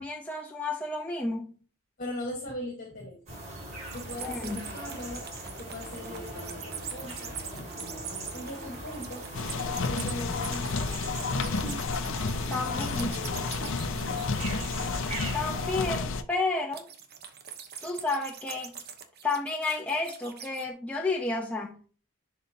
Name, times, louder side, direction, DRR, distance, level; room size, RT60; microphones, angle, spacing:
voice 1, 0.0-1.5 4.2-4.6 12.5-13.2 15.3-16.9 17.8-18.8 19.2-21.8, left 3 dB, 5° left, 0.8 m, -31 dB
voice 2, 2.0-3.4 3.9-5.3 5.6-10.8 12.7-13.5, left 1 dB, 45° left, 1.6 m, -40 dB
sound 1, 3.3-16.0, right 1 dB, 35° right, 4.1 m, -40 dB
sound 2, 3.8-15.2 16.7-20.7, right 7 dB, 50° right, 1.0 m, -43 dB
sound 3, 9.3-16.2, left 4 dB, 60° left, 0.6 m, -31 dB
10.5 x 4.6 x 2.9 m
head